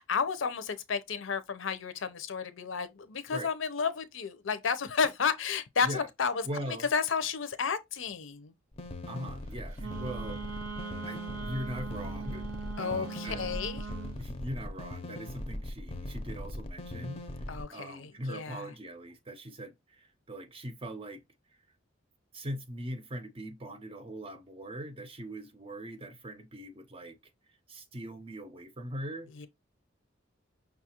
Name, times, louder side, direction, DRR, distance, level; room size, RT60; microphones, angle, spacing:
voice 1, 0.0-8.5 12.8-13.9 17.5-18.7 29.4-29.5, left 6 dB, 70° left, 0.6 m, -32 dB
voice 2, 6.5-6.9 9.1-10.6 11.0-12.4 12.8-13.5 14.2-21.2 22.3-27.2 27.5-29.3, right 1 dB, 30° right, 0.6 m, -41 dB
sound 1, 8.7-17.6, left 1 dB, 30° left, 0.6 m, -40 dB
Wind instrument woodwind instrument, 9.8-14.2, right 5 dB, 75° right, 0.7 m, -40 dB
5.6 x 2.4 x 2.9 m
head